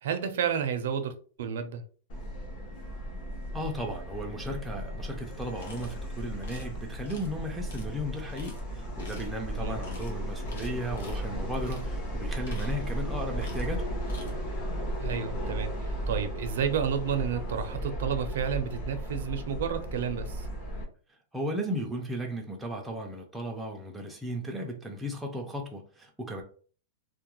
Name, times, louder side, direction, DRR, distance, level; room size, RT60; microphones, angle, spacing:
voice 1, 0.0-1.8 9.6-9.8 14.9-20.5, right 7 dB, 70° right, 0.4 m, -31 dB
Subway metro underground, 2.1-20.8, right 1 dB, 40° left, 0.7 m, -35 dB
voice 2, 3.5-14.0 21.3-26.4, equal, 5° right, 0.3 m, -35 dB
sound 1, 5.6-5.9 6.4-6.7 7.1-7.3 7.7-7.8 8.3-8.6 9.0-9.4 9.8-10.1 10.5-11.2 11.6-11.9 12.3-13.0 13.4-13.7 14.0-14.3, left 2 dB, 85° left, 0.8 m, -49 dB
2.3 x 2.0 x 2.9 m
supercardioid pair, 165°, 0 cm